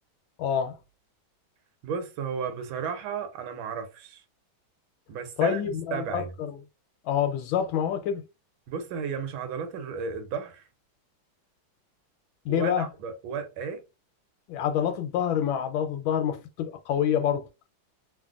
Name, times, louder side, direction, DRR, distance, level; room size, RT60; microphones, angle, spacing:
voice 1, 0.4-0.8 5.4-6.6 7.0-8.2 12.4-12.9 14.5-17.5, left 9 dB, 85° left, 1.4 m, -27 dB
voice 2, 1.8-4.2 5.1-6.3 8.7-10.6 12.5-13.8, right 6 dB, 85° right, 1.5 m, -34 dB
3.3 x 2.4 x 2.4 m
omnidirectional pair, 2.2 m